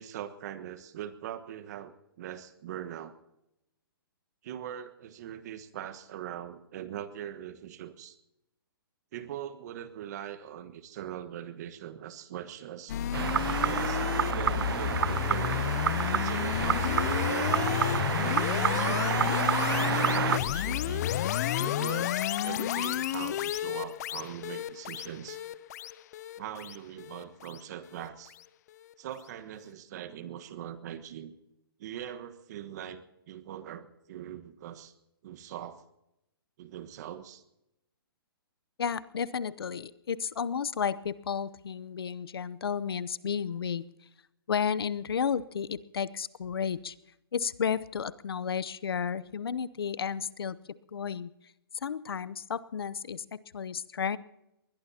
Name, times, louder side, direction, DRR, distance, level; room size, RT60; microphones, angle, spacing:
voice 1, 0.0-3.2 4.4-8.1 9.1-13.0 13.5-14.0 14.3-15.8 16.0-19.4 19.8-21.1 21.6-25.4 26.4-28.3 29.0-31.3 31.8-34.9 35.2-35.8 36.6-37.4, right 10 dB, 45° right, 10 dB, 1.4 m, -41 dB
sound 1, 12.9-28.1, left 12 dB, 45° left, 0.6 m, -31 dB
sound 2, 13.1-20.4, right 8 dB, 70° right, 0.5 m, -29 dB
voice 2, 38.8-43.9 44.5-46.9 47.3-50.6 50.9-51.3 51.8-54.2, left 7 dB, 75° left, 18 dB, 0.8 m, -32 dB
22.5 x 20.5 x 2.9 m, 0.88 s
hypercardioid pair, 145°, 12 cm